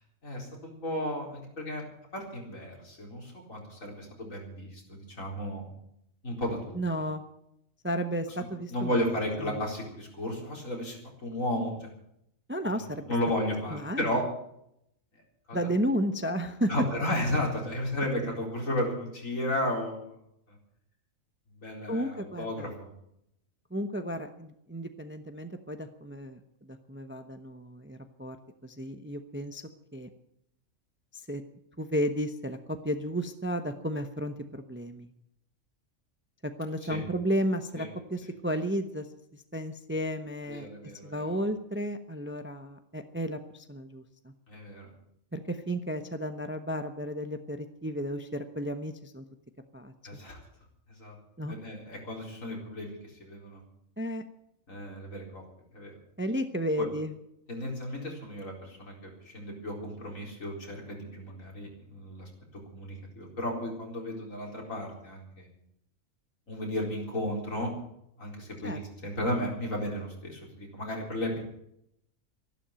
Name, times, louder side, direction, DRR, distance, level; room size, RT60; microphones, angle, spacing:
voice 1, 0.2-1.9 2.1-5.6 6.2-6.8 8.4-11.9 12.7-12.8 13.1-14.3 15.5-15.7 16.7-20.1 20.5-20.6 21.6-22.9 36.8-37.0 37.7-37.9 40.5-41.3 44.5-44.9 50.0-50.4 50.9-51.2 51.5-53.6 54.7-55.4 55.7-56.0 56.8-56.9 57.5-62.3 62.7-65.5 66.5-67.8 68.2-71.4, left 1 dB, 70° left, -1 dB, 4.6 m, -34 dB
voice 2, 6.7-7.2 7.8-9.0 9.4-9.6 12.5-13.1 13.7-14.2 15.5-16.7 21.9-22.7 23.7-28.4 28.6-29.6 29.9-30.1 31.1-31.4 31.8-35.1 36.4-39.1 39.3-40.7 41.0-44.3 45.3-49.2 49.7-49.9 51.4-51.6 54.0-54.2 56.2-57.1 68.6-68.8, equal, 10° right, 8 dB, 0.8 m, -33 dB
13.5 x 12.0 x 8.8 m, 0.76 s
omnidirectional pair, 1.4 m